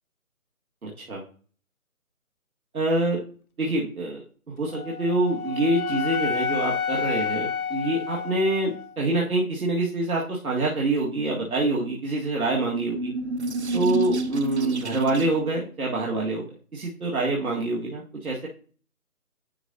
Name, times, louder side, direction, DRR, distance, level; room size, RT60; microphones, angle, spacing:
voice 1, 0.8-1.2 2.7-3.2 3.6-13.1 13.7-16.5 16.7-18.5, right 2 dB, 80° right, -4 dB, 2.0 m, -26 dB
Wind instrument woodwind instrument, 4.7-8.9, left 6 dB, 80° left, 0.6 m, -29 dB
sound 1, 12.6-15.5, right 2 dB, 50° right, 0.8 m, -29 dB
11.0 x 3.9 x 2.8 m, 0.41 s
figure-of-eight pair, 170°, 43 cm